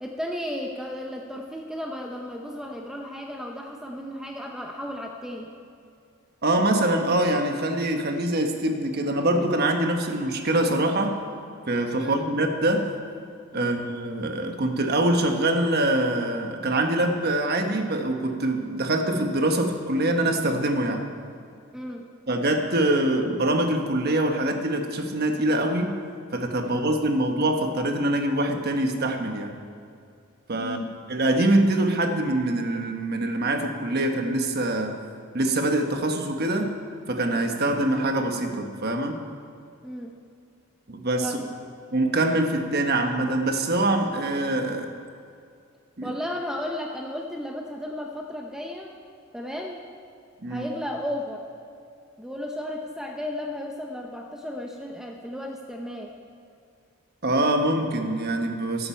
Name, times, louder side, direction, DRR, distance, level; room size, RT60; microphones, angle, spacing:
voice 1, 0.0-5.6 11.9-12.3 13.5-13.8 21.7-22.0 26.6-26.9 30.6-30.9 39.8-40.2 41.2-41.5 46.0-49.0 49.3-49.8 50.5-51.5 52.2-56.1, left 1 dB, 5° right, 1 dB, 0.7 m, -34 dB
voice 2, 6.4-11.2 11.7-12.9 13.5-21.1 22.3-26.0 26.3-29.6 30.5-35.0 35.3-36.8 37.1-39.2 40.9-41.3 41.9-44.9 46.0-46.1 50.4-50.7 57.2-58.9, right 1 dB, 50° right, 5 dB, 1.2 m, -24 dB
14.0 x 12.0 x 4.5 m, 2.4 s
head